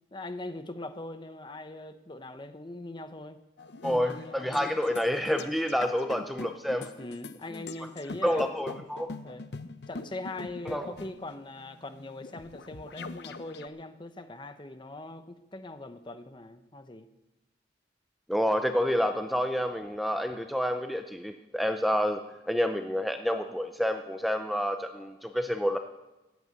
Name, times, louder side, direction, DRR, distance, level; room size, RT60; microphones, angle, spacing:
voice 1, 0.1-3.4 3.9-4.8 7.0-8.5 9.2-9.5 9.9-17.1, left 2 dB, 25° left, 10 dB, 0.9 m, -41 dB
sound 1, 3.6-13.7, left 3 dB, 65° left, 0.7 m, -43 dB
voice 2, 3.8-6.9 7.5-7.6 8.2-9.1 10.7-10.8 18.3-22.2 22.5-25.8, equal, ahead, 6 dB, 0.6 m, -28 dB
14.5 x 9.5 x 8.5 m, 1.0 s
head